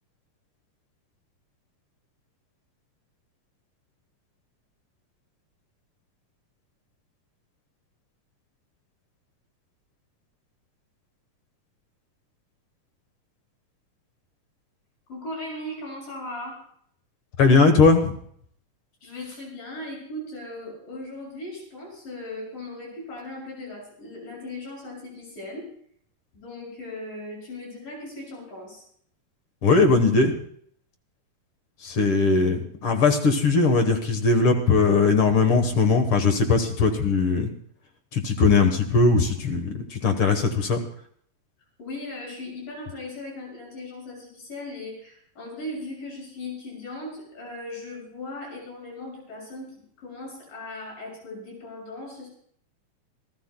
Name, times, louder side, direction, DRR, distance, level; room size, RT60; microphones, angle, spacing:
voice 1, 15.1-16.6 19.0-25.7 26.3-28.8 41.8-52.3, left 2 dB, 85° left, -2 dB, 8.8 m, -38 dB
voice 2, 17.4-18.1 29.6-30.3 31.8-37.5 38.1-40.8, left 4 dB, 55° left, 6 dB, 1.6 m, -20 dB
27.5 x 14.0 x 2.2 m, 0.63 s
omnidirectional pair, 3.8 m